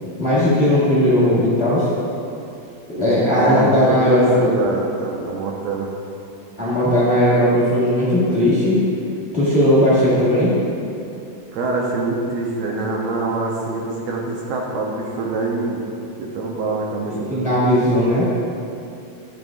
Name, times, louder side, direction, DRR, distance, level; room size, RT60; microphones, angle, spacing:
voice 1, 0.2-1.9 2.9-4.5 6.6-8.8 9.3-10.5 17.1-18.3, left 1 dB, 35° left, -10 dB, 0.9 m, -17 dB
voice 2, 3.3-5.9 11.5-15.9 16.2-17.5, right 3 dB, 75° right, -2 dB, 1.9 m, -24 dB
9.8 x 7.8 x 2.4 m, 2.6 s
omnidirectional pair, 3.6 m